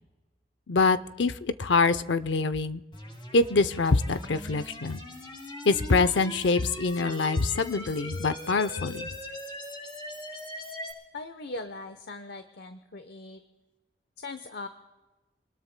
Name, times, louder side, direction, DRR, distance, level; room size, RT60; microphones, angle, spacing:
voice 1, 0.7-2.8 3.3-5.0 5.6-9.1, left 3 dB, 90° left, 12 dB, 0.6 m, -25 dB
sound 1, 2.9-10.9, left 1 dB, 30° left, 4.1 m, -41 dB
voice 2, 11.1-13.4 14.2-14.7, left 3 dB, 65° left, 8 dB, 0.9 m, -40 dB
28.0 x 20.0 x 2.2 m, 1.1 s
head